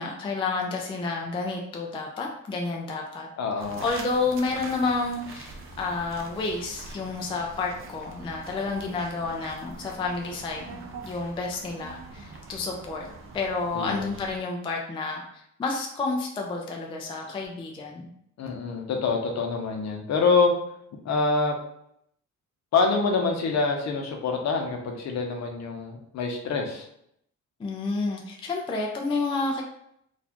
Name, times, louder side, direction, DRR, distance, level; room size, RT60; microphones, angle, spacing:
voice 1, 0.0-3.3 3.6-13.1 13.3-18.1 27.6-29.6, left 3 dB, 15° left, 0 dB, 0.3 m, -30 dB
voice 2, 3.4-3.8 13.7-14.1 18.4-20.5 21.0-21.6 22.7-26.9, left 4 dB, 60° left, 2 dB, 0.7 m, -26 dB
sound 1, 3.6-14.4, right 3 dB, 40° right, 0.5 m, -44 dB
4.0 x 2.4 x 2.9 m, 0.73 s
cardioid pair, 175°, 31 cm